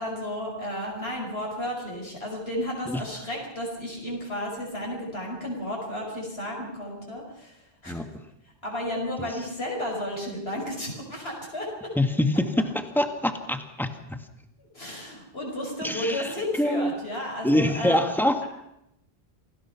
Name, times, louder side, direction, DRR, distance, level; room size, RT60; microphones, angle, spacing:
voice 1, 0.0-8.0 8.6-11.9 14.6-18.0, left 1 dB, 75° left, -1 dB, 5.8 m, -33 dB
voice 2, 12.0-14.2 15.8-16.9 17.4-18.4, left 1 dB, ahead, 6 dB, 1.8 m, -25 dB
27.5 x 19.0 x 5.9 m, 0.84 s
omnidirectional pair, 1.0 m